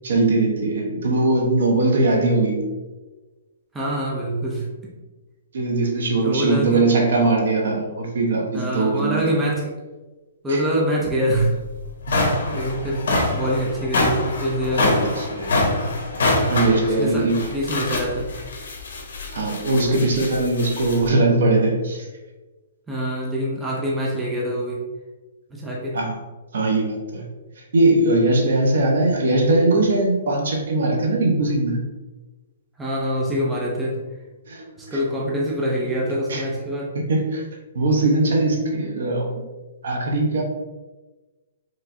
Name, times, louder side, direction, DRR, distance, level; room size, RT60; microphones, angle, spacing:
voice 1, 0.0-2.6 5.5-9.3 10.5-10.7 12.1-12.2 14.8-15.7 16.4-17.4 19.3-22.1 25.9-26.2 26.5-27.3 27.6-31.8 34.5-35.0 36.3-36.4 36.9-37.4 37.7-39.3 39.8-40.4, right 2 dB, 70° right, 1 dB, 0.9 m, -20 dB
voice 2, 3.7-4.7 6.1-6.8 8.5-9.8 10.4-11.6 12.2-15.0 17.0-18.3 22.9-24.9 25.5-26.0 32.8-34.0 34.8-36.9, equal, 5° right, -4 dB, 0.5 m, -25 dB
sound 1, 11.3-11.4 11.8-21.1, left 2 dB, 65° left, 1.1 m, -25 dB
4.9 x 3.1 x 2.7 m, 1.2 s
hypercardioid pair, 170°, 0 cm